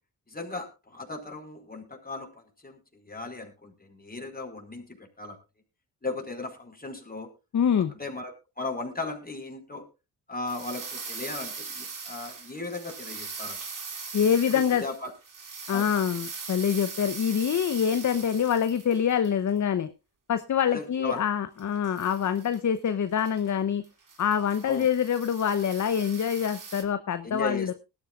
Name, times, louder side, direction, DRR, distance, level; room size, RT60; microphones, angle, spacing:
voice 1, 0.3-5.4 6.0-7.3 7.8-9.9 10.3-13.6 14.5-15.1 15.7-15.9 20.7-21.2 24.6-24.9 27.2-27.7, left 3 dB, 20° left, 4 dB, 4.7 m, -37 dB
voice 2, 7.5-7.9 14.1-14.8 15.7-19.9 20.3-23.8 24.2-27.7, left 8 dB, 40° left, 11 dB, 0.9 m, -25 dB
sound 1, 10.5-19.3 21.6-22.6 22.9-23.0 23.2-23.5 23.8-26.8, right 4 dB, 45° right, 3.2 m, -40 dB
20.0 x 12.5 x 2.5 m, 0.28 s
hypercardioid pair, 45°, 44 cm